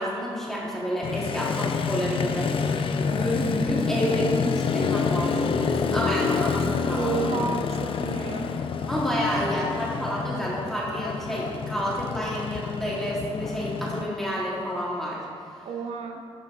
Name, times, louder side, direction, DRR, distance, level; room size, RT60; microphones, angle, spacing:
voice 1, 0.0-7.4 8.9-15.3, equal, 5° left, -6 dB, 1.0 m, -29 dB
Motorcycle, 1.0-14.0, left 5 dB, 60° left, 0.4 m, -28 dB
voice 2, 7.0-8.5 15.6-16.2, right 5 dB, 80° right, 4 dB, 0.7 m, -31 dB
10.5 x 7.0 x 2.4 m, 2.4 s
wide cardioid pair, 150°, 10 cm